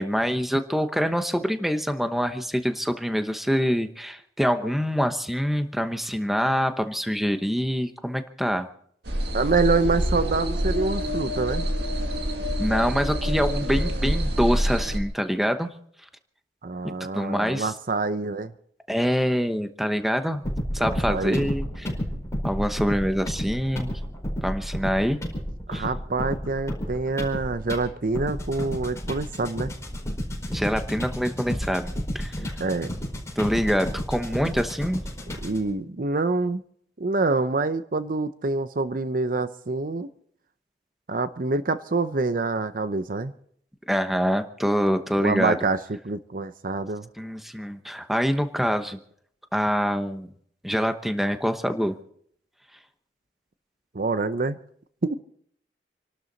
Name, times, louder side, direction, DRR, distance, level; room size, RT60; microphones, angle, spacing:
voice 1, 0.0-8.7 12.6-15.7 17.1-17.7 18.9-20.4 20.7-21.9 22.4-24.0 24.4-25.2 25.7-25.9 30.5-32.3 33.4-35.0 43.9-45.6 47.2-49.0 49.5-50.3 50.6-51.9, equal, ahead, 8 dB, 1.0 m, -25 dB
sound 1, 9.1-15.0, equal, 65° right, 2.2 m, -26 dB
voice 2, 9.3-11.7 16.6-18.5 20.9-21.5 25.7-29.7 32.6-32.9 35.4-36.6 37.0-40.1 41.1-43.3 45.2-47.1 53.9-54.6 55.0-55.2, right 3 dB, 50° right, 12 dB, 0.7 m, -26 dB
sound 2, 20.4-35.7, equal, 15° left, 4.8 m, -32 dB
28.0 x 12.5 x 4.0 m, 0.64 s
head